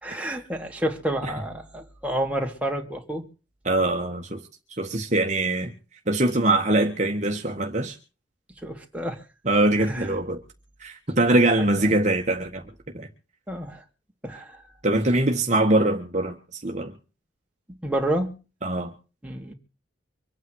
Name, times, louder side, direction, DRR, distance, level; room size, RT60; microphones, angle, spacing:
voice 1, 0.0-3.2 8.6-9.2 9.9-10.2 11.8-11.9 13.5-13.8 14.2-14.6 17.7-18.3 19.2-19.5, right 1 dB, 5° right, 2.7 m, -29 dB
voice 2, 3.6-4.4 4.8-5.7 6.1-8.0 9.4-10.4 10.8-12.6 12.9-13.1 14.8-16.9 18.6-18.9, right 2 dB, 35° right, 1.6 m, -23 dB
25.5 x 9.3 x 4.7 m
head